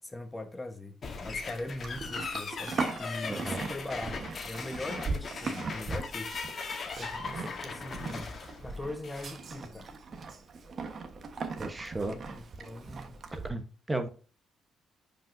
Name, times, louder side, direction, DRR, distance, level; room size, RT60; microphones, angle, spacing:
voice 1, 0.1-6.4 7.0-8.4 8.6-9.9 12.0-13.2, left 2 dB, 20° left, 1.1 m, -41 dB
sound 1, 1.0-9.4, left 5 dB, 45° left, 1.3 m, -39 dB
Livestock farm animals working animals, 1.0-13.5, right 4 dB, 50° right, 1.2 m, -39 dB
voice 2, 3.3-3.7 11.6-12.1 13.3-13.6 13.9-14.1, right 2 dB, 20° right, 1.1 m, -34 dB
9.8 x 5.2 x 2.7 m
cardioid pair, 90°, 0 cm